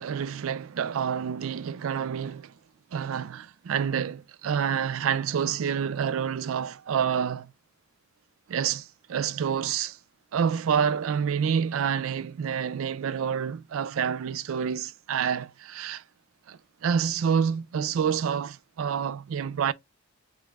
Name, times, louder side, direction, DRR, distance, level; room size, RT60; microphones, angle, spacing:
voice 1, 0.0-2.5 2.9-7.5 8.5-10.0 10.3-16.0 16.5-19.7, right 7 dB, 60° right, 0.3 m, -28 dB
5.0 x 2.4 x 3.3 m
head